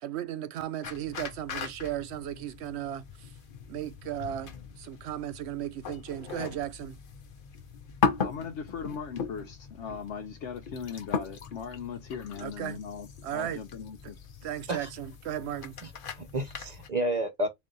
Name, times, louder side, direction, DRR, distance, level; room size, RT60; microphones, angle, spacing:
voice 1, 0.0-3.3 3.7-7.0 12.4-12.8 13.2-13.6 14.0-14.1 14.4-15.8, right 11 dB, 75° right, 0.8 m, -36 dB
sound 1, 0.8-16.9, left 5 dB, 55° left, 0.9 m, -38 dB
voice 2, 8.2-14.2, left 6 dB, 85° left, 1.0 m, -39 dB
voice 3, 15.8-17.5, right 1 dB, 40° right, 0.8 m, -31 dB
4.0 x 2.6 x 3.8 m
omnidirectional pair, 1.2 m